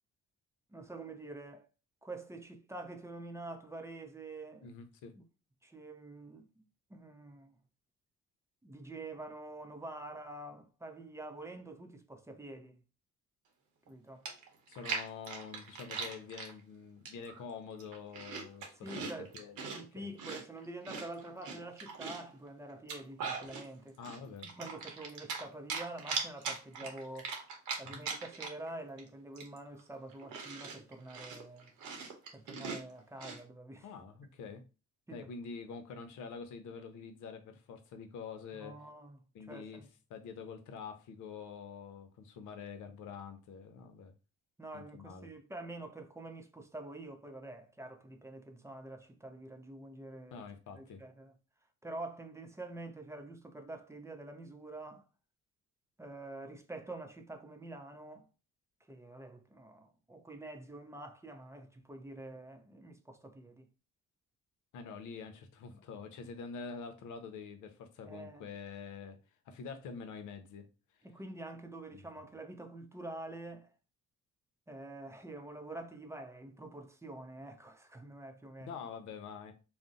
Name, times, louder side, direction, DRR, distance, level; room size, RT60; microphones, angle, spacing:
voice 1, 0.7-1.7 2.0-4.7 5.2-5.3 5.6-6.6 6.9-7.5 8.6-12.8 13.9-14.3 18.8-19.3 19.7-24.2 24.6-27.3 27.8-31.7 32.3-33.9 35.1-35.3 38.6-39.2 39.5-39.9 44.6-50.5 50.8-51.3 51.8-55.1 56.0-58.3 58.9-63.7 65.7-65.8 68.1-68.5 71.0-73.7 74.7-78.8, right 2 dB, 10° right, 0.5 m, -47 dB
voice 2, 4.6-5.1 14.7-19.1 19.3-19.6 19.9-20.1 24.0-24.5 27.8-28.0 33.8-34.6 35.1-38.8 39.3-39.8 40.1-44.1 44.7-45.3 50.3-51.0 64.7-69.2 69.5-70.7 71.9-72.0 78.6-79.5, left 5 dB, 75° left, 0.6 m, -46 dB
Chewing mastication, 13.9-14.0 14.3-16.5 17.0-17.4 17.7-19.8 20.2-22.3 22.7-23.7 24.0-25.4 25.7-28.7 29.0-29.1 29.4-33.4, right 5 dB, 85° right, 0.8 m, -40 dB
2.5 x 2.1 x 3.7 m
cardioid pair, 90°, 30 cm